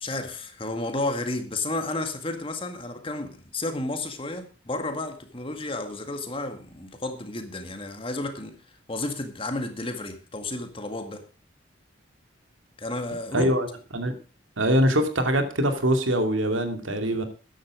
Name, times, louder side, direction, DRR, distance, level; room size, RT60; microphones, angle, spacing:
voice 1, 0.0-8.6 8.9-11.3 12.8-13.5, left 2 dB, 30° left, 1.9 m, -32 dB
voice 2, 13.3-13.7 13.9-14.1 14.6-17.2, equal, 85° right, 2.5 m, -23 dB
14.0 x 10.0 x 4.9 m
head